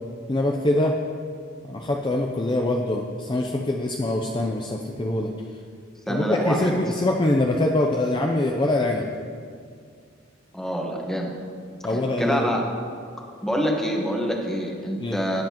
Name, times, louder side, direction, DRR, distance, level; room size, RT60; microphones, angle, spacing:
voice 1, 0.3-0.9 1.7-5.3 6.1-9.1 11.8-12.5 15.0-15.2, left 1 dB, 25° left, 1 dB, 0.5 m, -24 dB
voice 2, 6.1-6.7 10.5-11.3 11.9-12.6 13.4-15.4, equal, 5° left, 0 dB, 1.2 m, -26 dB
18.0 x 7.7 x 3.0 m, 2.2 s
head